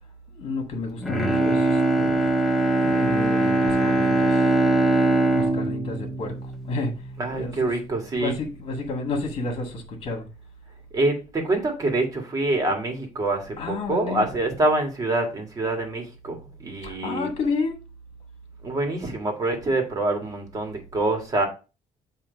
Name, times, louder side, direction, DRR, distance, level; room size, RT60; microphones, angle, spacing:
voice 1, 0.3-2.3 2.8-4.4 5.3-6.9 7.3-7.7 8.2-10.3 13.6-14.2 16.8-17.8, left 3 dB, 45° left, 1.8 m, -31 dB
Bowed string instrument, 1.0-7.2 7.6-7.7, right 2 dB, ahead, 0.9 m, -22 dB
voice 2, 7.2-8.3 10.9-16.4 16.6-17.3 18.6-21.5, right 2 dB, 25° right, 1.7 m, -25 dB
7.6 x 2.8 x 5.1 m
cardioid pair, 155°, 14 cm